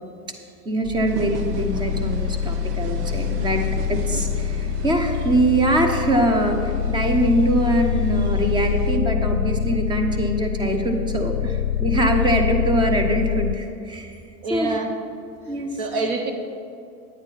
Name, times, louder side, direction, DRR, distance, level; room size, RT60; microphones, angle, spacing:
voice 1, 0.6-3.6 3.9-11.3 11.8-14.2 14.5-14.8 15.5-15.8, right 1 dB, 10° right, 5 dB, 0.7 m, -23 dB
sound 1, 0.8-13.5, left 9 dB, 60° left, 0.6 m, -25 dB
sound 2, 1.1-9.0, right 5 dB, 75° right, 1.1 m, -34 dB
voice 2, 14.4-15.0 15.8-16.3, right 3 dB, 45° right, 5 dB, 0.9 m, -26 dB
9.9 x 8.6 x 4.1 m, 2.5 s
hypercardioid pair, 130°, 47 cm